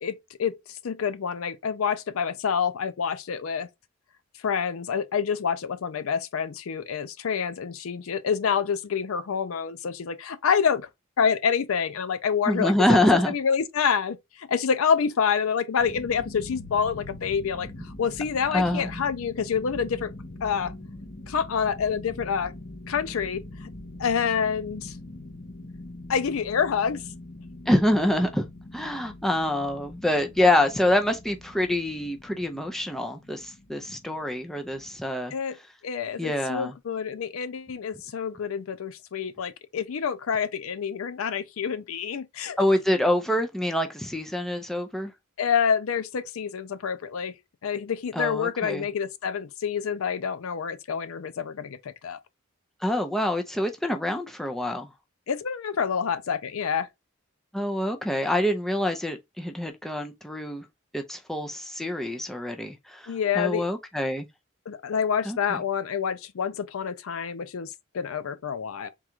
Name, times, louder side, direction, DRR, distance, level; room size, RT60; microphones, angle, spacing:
voice 1, 0.0-3.7 4.4-10.9 11.2-20.1 20.4-20.7 21.3-22.5 22.9-23.7 24.0-25.0 26.1-27.0 35.3-35.6 35.8-42.6 45.4-47.4 47.6-52.2 55.3-56.9 63.1-63.7 64.7-68.9, left 6 dB, 85° left, 0.5 m, -27 dB
voice 2, 12.5-13.3 18.5-19.0 27.7-28.4 28.7-35.3 36.2-36.7 42.6-45.1 48.1-48.9 52.8-54.9 57.5-60.7 60.9-64.3 65.3-65.6, left 1 dB, ahead, 0.5 m, -26 dB
sound 1, 15.8-35.0, left 2 dB, 45° left, 0.7 m, -43 dB
3.7 x 2.4 x 4.3 m
head